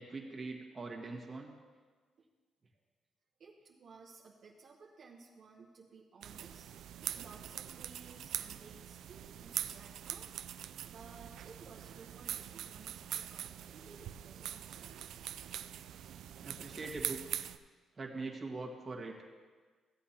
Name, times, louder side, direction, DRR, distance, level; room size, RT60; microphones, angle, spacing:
voice 1, 0.0-1.5 16.4-17.2 18.0-19.3, right 3 dB, 30° right, -1 dB, 1.7 m, -42 dB
voice 2, 3.4-6.7 7.1-10.3 10.9-15.0, right 4 dB, 55° right, -3 dB, 1.0 m, -56 dB
sound 1, 6.2-17.6, right 10 dB, 75° right, 0.4 m, -43 dB
15.5 x 8.2 x 2.9 m, 1.5 s
cardioid pair, 90°, 0 cm